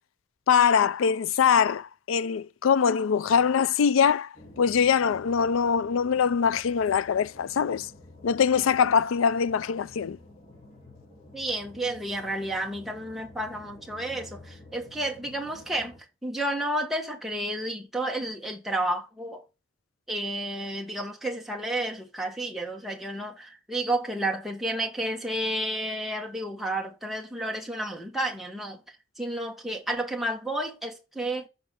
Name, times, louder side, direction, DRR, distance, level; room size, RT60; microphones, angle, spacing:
voice 1, 0.5-7.9 8.2-10.2, left 7 dB, 90° left, 0.4 m, -23 dB
sound 1, 4.3-16.0, left 2 dB, 25° left, 3.3 m, -50 dB
voice 2, 11.3-19.4 20.1-28.8 29.2-31.5, right 1 dB, ahead, 1.2 m, -31 dB
7.8 x 5.3 x 3.6 m
head